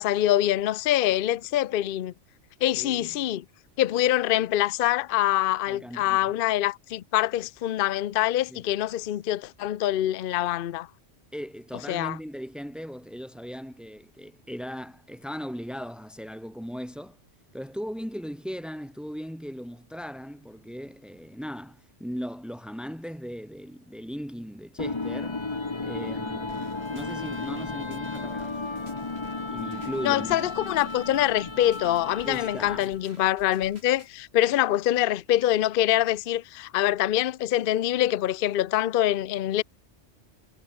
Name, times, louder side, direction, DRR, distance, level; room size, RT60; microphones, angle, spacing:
voice 1, 0.0-2.1 2.6-3.4 3.8-10.9 11.9-12.2 30.0-39.6, left 13 dB, 55° left, 0.7 m, -25 dB
voice 2, 2.7-3.1 5.7-6.3 8.5-8.6 11.3-17.2 17.5-25.4 25.8-28.6 29.5-30.5 32.2-32.8 33.1-33.3, equal, ahead, 4.8 m, -38 dB
sound 1, 24.8-33.0, left 3 dB, 25° left, 1.2 m, -34 dB
sound 2, 26.5-34.1, right 1 dB, 55° right, 7.7 m, -55 dB
omnidirectional pair, 1.2 m